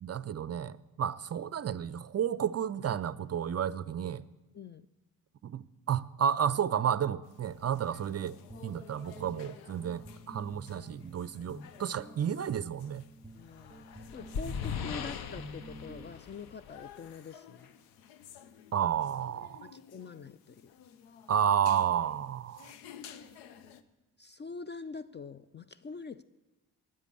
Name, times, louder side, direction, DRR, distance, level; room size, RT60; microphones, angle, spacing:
voice 1, 0.0-4.2 5.4-13.0 18.7-19.7 21.3-22.7, right 9 dB, 35° right, 18 dB, 0.5 m, -31 dB
voice 2, 4.5-4.9 13.3-17.7 19.6-20.7 24.2-26.2, left 4 dB, 25° left, 15 dB, 0.4 m, -45 dB
sound 1, 7.2-23.8, left 8 dB, 90° left, 0.7 m, -54 dB
Guitar, 8.2-16.2, right 1 dB, 5° right, 1.8 m, -51 dB
sound 2, 13.5-17.2, left 7 dB, 50° left, 0.8 m, -39 dB
9.7 x 8.2 x 8.6 m, 1.1 s
hypercardioid pair, 50°, 47 cm